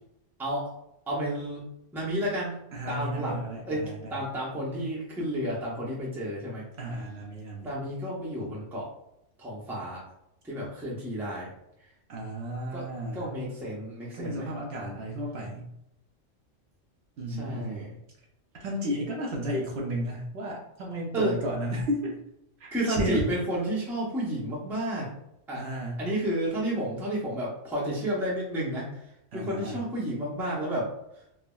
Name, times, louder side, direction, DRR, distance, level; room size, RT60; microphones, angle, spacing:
voice 1, 0.4-0.7 1.1-2.6 2.9-3.4 3.7-6.6 7.6-8.9 9.4-10.0 10.4-11.5 12.7-12.9 13.1-14.5 17.3-18.0 21.1-21.4 22.7-25.1 25.5-25.6 26.0-29.0 29.3-30.9, right 1 dB, ahead, -6 dB, 0.5 m, -31 dB
voice 2, 2.7-4.2 6.8-7.7 12.1-13.3 14.1-15.7 17.2-17.9 18.6-22.2 22.6-23.2 25.5-26.0 29.3-29.8, equal, 65° right, -1 dB, 0.8 m, -33 dB
3.3 x 2.0 x 2.2 m, 0.80 s
omnidirectional pair, 1.3 m